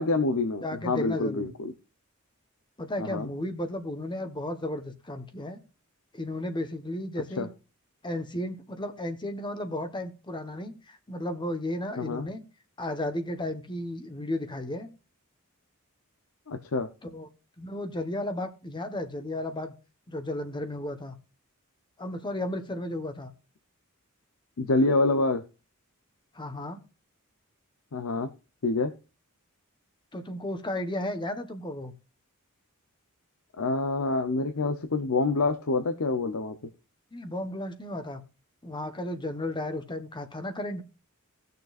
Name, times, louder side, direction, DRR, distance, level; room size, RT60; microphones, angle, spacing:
voice 1, 0.0-1.7 3.0-3.3 7.4-7.5 12.0-12.3 16.5-16.9 24.6-25.4 27.9-28.3 28.6-28.9 33.6-36.6, left 3 dB, 75° left, 0.7 m, -26 dB
voice 2, 0.6-1.5 2.8-5.6 6.1-7.5 8.0-12.4 12.8-14.9 17.0-17.3 17.6-19.7 20.1-21.2 22.0-23.3 26.3-26.8 30.1-31.9 37.1-38.2 38.6-40.8, left 1 dB, 20° left, 1.1 m, -34 dB
18.0 x 6.7 x 2.4 m
head